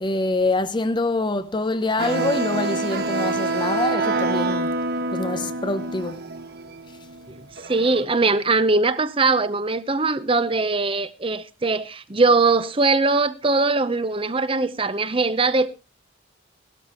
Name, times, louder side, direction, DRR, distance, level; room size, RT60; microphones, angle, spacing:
voice 1, 0.0-4.7 5.1-6.2, left 2 dB, 25° left, 0.6 m, -25 dB
sound 1, 2.0-8.0, right 2 dB, 55° right, 1.2 m, -26 dB
voice 2, 7.3-15.7, right 3 dB, 30° right, 0.8 m, -21 dB
17.5 x 13.0 x 3.0 m
head